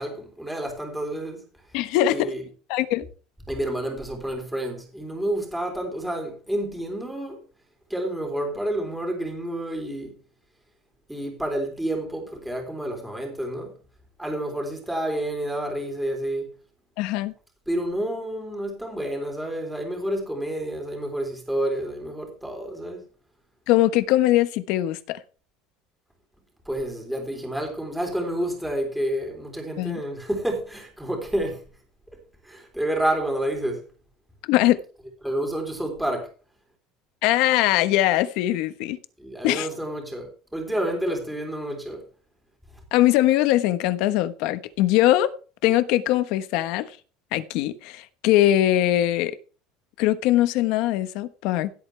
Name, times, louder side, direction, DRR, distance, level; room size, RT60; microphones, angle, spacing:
voice 1, 0.0-1.5 2.1-2.4 3.5-7.4 7.9-10.1 11.1-13.7 14.2-16.5 17.7-23.0 26.7-31.7 32.4-33.8 35.2-36.3 39.2-42.0, right 1 dB, 5° right, 3.5 m, -29 dB
voice 2, 1.7-2.3 2.7-3.1 17.0-17.3 23.7-25.2 29.8-30.0 34.5-34.8 37.2-39.0 39.4-39.7 42.9-45.3 45.6-46.9 47.3-49.3 50.0-51.7, left 14 dB, 65° left, 1.2 m, -21 dB
16.5 x 8.0 x 3.4 m
cardioid pair, 160°, 0 cm